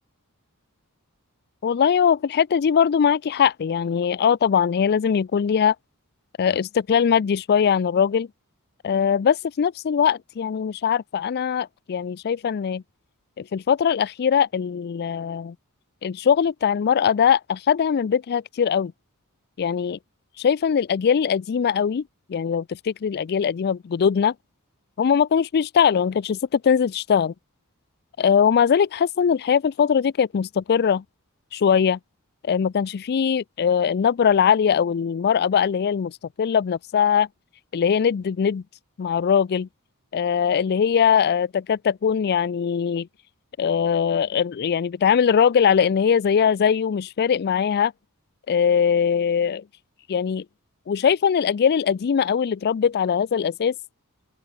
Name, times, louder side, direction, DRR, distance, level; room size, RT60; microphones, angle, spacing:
voice 1, 1.6-5.7 6.4-8.3 8.8-12.8 13.4-15.6 16.0-18.9 19.6-20.0 20.4-22.0 22.3-24.3 25.0-27.3 28.2-31.0 31.5-32.0 32.4-36.1 36.4-37.3 37.7-38.6 39.0-39.7 40.1-43.1 43.6-47.9 48.5-49.6 50.1-50.4 50.9-53.7, left 7 dB, 45° left, 0.4 m, -21 dB
open air
head